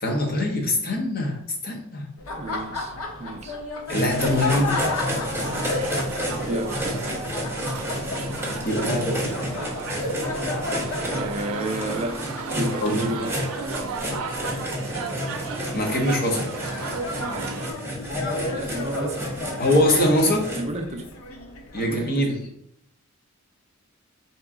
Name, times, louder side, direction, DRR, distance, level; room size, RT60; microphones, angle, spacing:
voice 1, 0.0-2.1 3.9-4.8 8.6-9.4 12.8-13.1 15.7-16.4 19.6-20.5 21.7-22.4, left 1 dB, 45° left, 0 dB, 1.0 m, -23 dB
Laughter, 2.2-22.0, left 2 dB, 80° left, 0.8 m, -34 dB
voice 2, 2.3-3.6 6.4-7.1 11.1-12.3 12.5-13.5 18.6-19.3 20.5-21.1 21.8-22.5, right 1 dB, 30° right, 5 dB, 0.4 m, -32 dB
sound 1, 3.9-20.6, equal, 10° right, 1.0 m, -31 dB
sound 2, 5.4-17.7, right 4 dB, 80° right, 0.5 m, -34 dB
4.6 x 3.0 x 3.7 m, 0.73 s
head